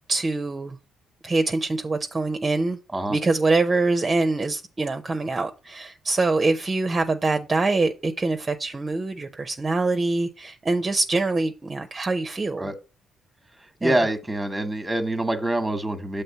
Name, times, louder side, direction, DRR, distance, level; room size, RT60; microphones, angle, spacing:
voice 1, 0.1-0.8 1.2-2.8 3.1-12.7 13.8-14.0, right 3 dB, 25° right, 0.6 m, -24 dB
voice 2, 13.8-16.2, right 1 dB, 10° right, 1.1 m, -25 dB
7.0 x 3.3 x 5.6 m
cardioid pair, 90°, 0 cm